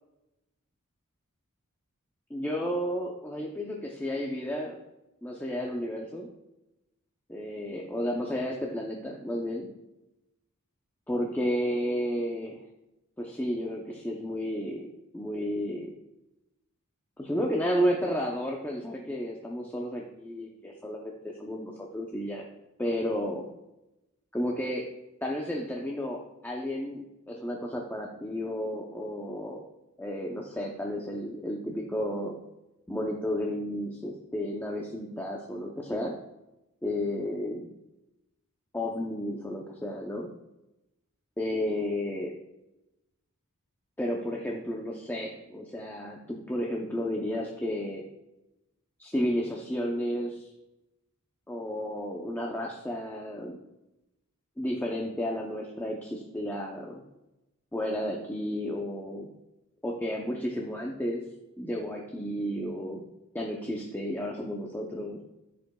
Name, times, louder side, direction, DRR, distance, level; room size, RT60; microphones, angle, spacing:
voice 1, 2.3-4.8 5.2-6.3 7.3-9.7 11.1-12.6 13.2-14.9 15.1-15.9 17.2-22.5 22.8-23.5 24.3-24.8 25.2-29.6 30.0-32.4 32.9-36.1 36.8-37.6 38.7-40.3 41.4-42.3 44.0-48.0 49.0-50.5 51.5-53.6 54.6-57.0 57.7-59.3 59.8-61.2 61.6-63.0 63.3-65.2, equal, 10° left, -1 dB, 0.7 m, -32 dB
15.0 x 5.1 x 2.3 m, 0.94 s
head